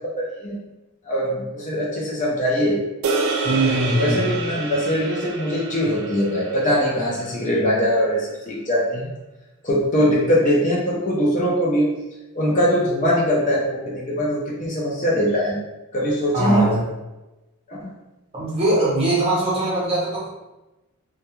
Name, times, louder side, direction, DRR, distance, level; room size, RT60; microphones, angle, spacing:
voice 1, 0.2-0.6 1.1-2.8 4.0-9.1 9.6-11.9 12.3-15.6 15.9-16.8 17.7-17.9, equal, 35° left, -5 dB, 0.5 m, -21 dB
sound 1, 3.0-7.5, right 3 dB, 65° right, 0.3 m, -28 dB
voice 2, 3.4-4.2 16.3-16.8 18.3-20.3, right 1 dB, 25° right, -6 dB, 0.8 m, -21 dB
2.2 x 2.2 x 3.0 m, 1.0 s
head